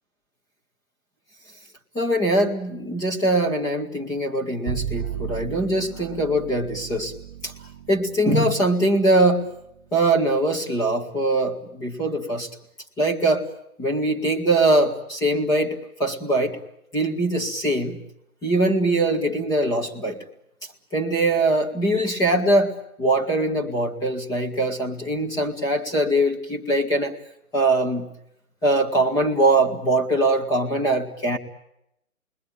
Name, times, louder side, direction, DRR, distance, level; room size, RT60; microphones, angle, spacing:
voice 1, 1.9-7.1 7.4-7.5 7.9-9.5 9.9-12.5 13.0-13.5 13.8-16.6 16.9-18.0 18.4-20.2 20.9-27.2 27.5-28.1 28.6-31.4, right 1 dB, 10° left, -1 dB, 1.9 m, -22 dB
Bowed string instrument, 4.7-11.1, right 10 dB, 20° right, 1.3 m, -37 dB
29.0 x 22.0 x 8.8 m, 0.80 s
figure-of-eight pair, 150°, 43 cm